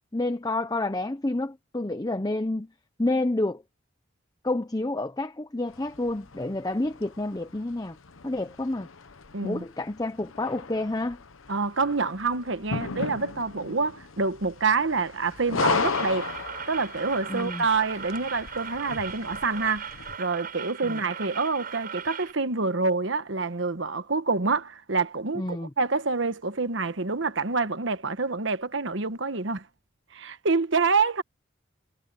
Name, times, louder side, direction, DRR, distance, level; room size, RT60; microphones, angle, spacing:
voice 1, 0.1-2.7 3.0-3.6 4.4-8.0 8.2-8.9 9.4-11.2 17.3-17.7 20.8-21.0 25.3-25.7, left 2 dB, 20° left, 0.7 m, -29 dB
sound 1, 5.7-20.2, left 4 dB, 80° left, 1.0 m, -36 dB
voice 2, 9.3-9.6 11.5-16.3 16.7-19.8 20.2-29.6 30.1-31.2, right 4 dB, 60° right, 1.2 m, -27 dB
sound 2, 15.7-22.3, right 7 dB, 45° right, 6.8 m, -38 dB
head